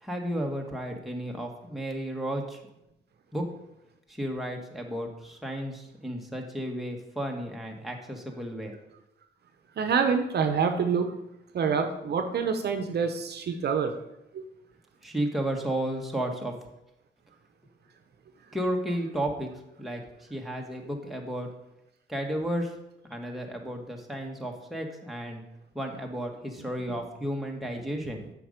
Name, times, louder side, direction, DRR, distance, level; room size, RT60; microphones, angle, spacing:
voice 1, 0.0-2.6 3.3-3.5 4.1-8.8 15.0-16.5 18.5-19.5 19.8-20.0 20.3-21.5 22.1-22.7 23.0-25.4 25.7-28.2, right 1 dB, ahead, 0 dB, 1.4 m, -33 dB
voice 2, 9.8-11.1 11.5-13.9 14.3-14.4, right 6 dB, 55° right, 6 dB, 0.9 m, -26 dB
7.7 x 5.3 x 5.1 m, 0.87 s
cardioid pair, 90°, 20 cm